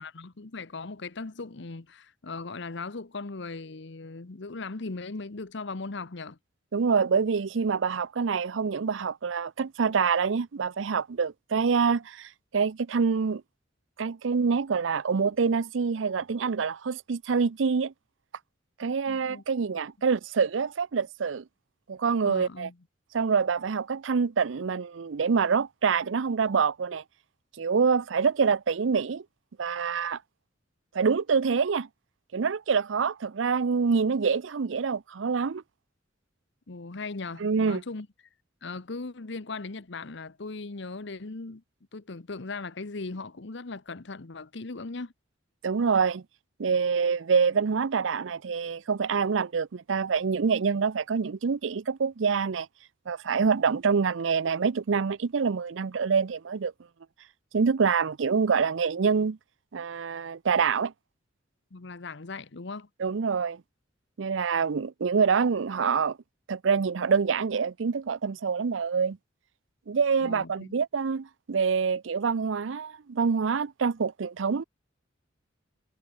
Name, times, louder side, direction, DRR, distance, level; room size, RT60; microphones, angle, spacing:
voice 1, 0.0-6.4 19.1-19.4 22.2-22.8 36.7-38.1 38.6-41.6 41.9-45.1 61.7-62.9 70.2-70.8, left 3 dB, 65° left, 1.0 m, -38 dB
voice 2, 6.7-13.4 14.0-17.9 18.8-21.4 21.9-22.7 23.1-27.0 27.6-29.2 29.6-30.2 30.9-31.9 32.3-35.6 37.4-37.8 45.6-46.2 46.6-52.7 53.1-56.7 57.5-59.4 59.7-60.9 63.0-63.6 64.2-66.2 66.5-69.2 69.9-74.6, right 5 dB, 75° right, 0.5 m, -26 dB
head